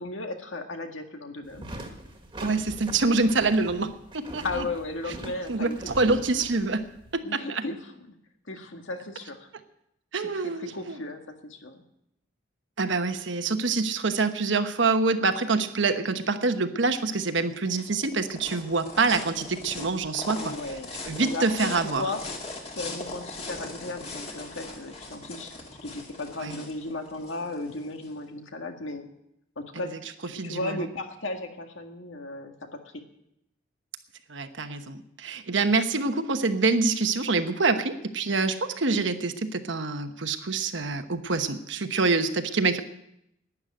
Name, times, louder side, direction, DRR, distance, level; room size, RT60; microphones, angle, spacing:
voice 1, 0.0-1.6 4.4-6.2 7.2-8.2 8.5-9.5 10.3-11.8 20.4-22.2 22.7-25.5 25.8-29.1 29.6-29.9 30.4-33.0, left 2 dB, 80° left, 5 dB, 1.9 m, -35 dB
sound 1, 1.5-7.2, right 1 dB, 25° right, 1.7 m, -42 dB
voice 2, 2.4-4.6 5.5-6.8 7.1-7.6 10.1-11.0 12.8-20.5 21.1-22.1 26.4-26.6 29.8-29.9 30.3-30.9 34.3-42.8, right 3 dB, 70° right, 8 dB, 1.1 m, -26 dB
sound 2, 17.3-28.1, left 2 dB, 30° left, 2.2 m, -40 dB
12.0 x 10.0 x 8.8 m, 0.80 s
head